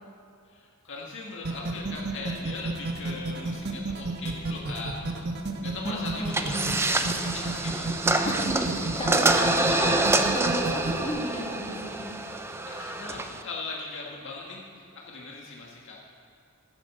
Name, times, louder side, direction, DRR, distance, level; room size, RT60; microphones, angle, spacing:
voice 1, 0.5-5.2 5.6-8.3 8.6-8.7 9.1-10.0 12.7-14.6 15.0-16.0, left 3 dB, 60° left, -3 dB, 1.9 m, -39 dB
sound 1, 1.4-11.1, right 2 dB, 50° right, 1.3 m, -32 dB
voice 2, 5.8-6.7 8.3-12.1, equal, 25° left, -3 dB, 2.8 m, -34 dB
sound 2, 6.3-13.4, right 2 dB, 10° right, 0.6 m, -26 dB
13.5 x 10.0 x 6.8 m, 2.4 s
head